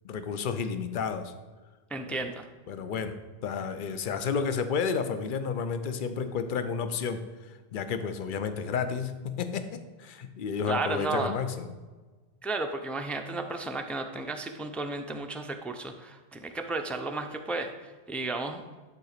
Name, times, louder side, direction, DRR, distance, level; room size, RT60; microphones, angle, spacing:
voice 1, 0.0-1.3 2.1-2.2 2.7-3.1 3.4-7.2 7.7-11.7, left 6 dB, 55° left, 10 dB, 0.8 m, -31 dB
voice 2, 1.9-2.5 10.7-11.3 12.4-18.6, right 3 dB, ahead, 5 dB, 0.4 m, -33 dB
11.0 x 4.0 x 6.6 m, 1.3 s
omnidirectional pair, 1.0 m